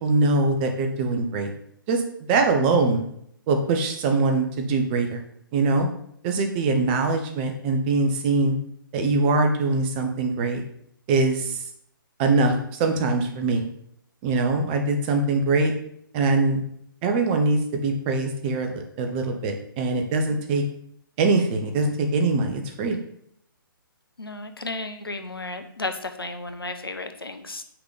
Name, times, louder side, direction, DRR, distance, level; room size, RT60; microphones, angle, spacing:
voice 1, 0.0-1.5 1.9-3.0 3.5-5.2 5.5-5.9 6.2-8.6 8.9-10.6 11.1-11.6 12.2-13.7 14.2-15.7 16.1-16.6 17.0-20.6 21.2-23.0, right 3 dB, 25° right, 5 dB, 0.9 m, -23 dB
voice 2, 24.2-27.6, left 2 dB, 85° left, 8 dB, 0.8 m, -33 dB
5.9 x 4.0 x 4.9 m, 0.71 s
figure-of-eight pair, 135°, 12 cm